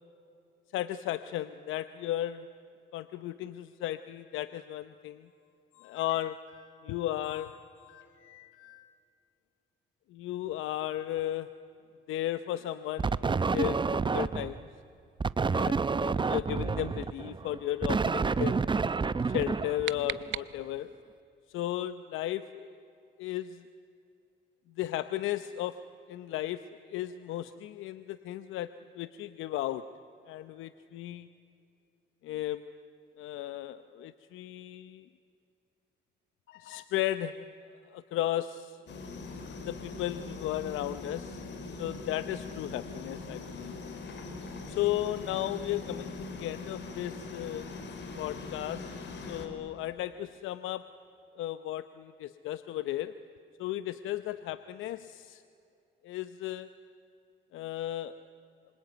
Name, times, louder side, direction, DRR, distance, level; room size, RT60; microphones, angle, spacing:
voice 1, 0.7-2.5 2.9-5.3 5.7-8.9 10.1-11.5 12.1-14.6 15.5-18.7 19.3-20.9 21.5-22.7 23.2-23.7 24.8-25.8 26.1-29.8 30.3-31.3 32.2-32.6 33.2-35.1 36.5-37.4 37.9-38.8 39.7-41.4 41.8-43.7 44.7-47.6 48.2-48.9 49.3-50.8 51.3-53.1 53.6-55.4 56.0-56.7 57.5-58.1, left 13 dB, 90° left, 12 dB, 0.8 m, -35 dB
sound 1, 13.0-14.6 15.2-20.3, right 4 dB, 25° right, 0.7 m, -29 dB
sound 2, 19.4-21.0, right 13 dB, 75° right, 0.8 m, -40 dB
sound 3, 38.9-49.5, left 3 dB, 65° left, 4.3 m, -42 dB
26.5 x 24.5 x 9.1 m, 2.7 s
cardioid pair, 90°, 20 cm